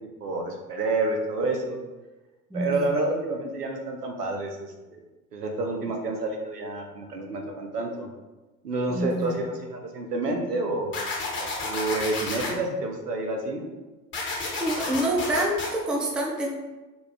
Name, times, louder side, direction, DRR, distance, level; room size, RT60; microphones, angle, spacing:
voice 1, 0.0-1.8 2.5-5.0 5.3-8.1 8.6-10.9 11.4-13.7, right 2 dB, 85° right, 3 dB, 0.8 m, -29 dB
voice 2, 2.5-3.0 8.9-9.4 14.6-16.5, right 1 dB, ahead, -1 dB, 0.4 m, -27 dB
Simple Dubstep Plucks, 10.9-12.5 14.1-15.7, left 3 dB, 25° left, 1.2 m, -31 dB
5.0 x 2.4 x 3.3 m, 1.1 s
figure-of-eight pair, 75°, 46 cm